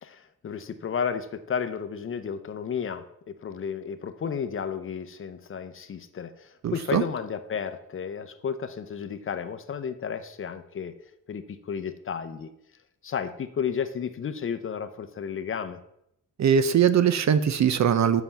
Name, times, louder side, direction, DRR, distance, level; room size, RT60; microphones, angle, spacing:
voice 1, 0.0-11.0 11.3-12.5 13.0-15.8, left 7 dB, 40° left, 9 dB, 0.6 m, -33 dB
voice 2, 6.6-7.0 16.4-18.2, right 8 dB, 50° right, 13 dB, 0.6 m, -21 dB
7.6 x 5.9 x 6.9 m, 0.79 s
wide cardioid pair, 180°, 34 cm